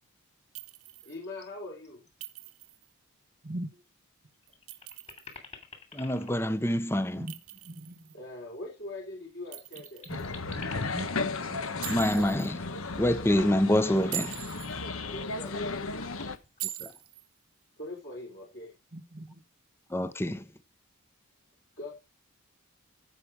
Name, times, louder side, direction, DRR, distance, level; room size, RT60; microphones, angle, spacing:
Chink clink, 0.5-1.2 2.2-2.8 4.5-5.4 7.3-8.1 9.5-10.3 11.8-12.5 14.0-14.7 16.6-17.2, right 14 dB, 90° right, 1.5 m, -41 dB
voice 1, 1.0-2.0 8.1-10.1 15.1-15.7 17.8-18.7 21.8-21.9, left 2 dB, 55° left, 4.1 m, -41 dB
sound 1, 1.1-1.5 1.8-2.2 2.5-2.6 3.9-4.0 4.3-7.4 9.0-12.5 14.4-15.0 15.3-15.7 16.0-17.1, left 4 dB, 30° left, 3.0 m, -50 dB
voice 2, 5.9-7.3 11.9-12.6 13.0-14.3 16.8-16.9 19.9-20.4, left 1 dB, 10° left, 0.7 m, -26 dB
voice 3, 7.6-8.1 10.1-10.2 10.5-10.6 10.9-11.8 18.9-19.4, right 1 dB, 40° right, 1.0 m, -41 dB
sound 2, 10.1-16.4, left 3 dB, 70° left, 1.1 m, -35 dB
15.0 x 5.8 x 4.8 m
head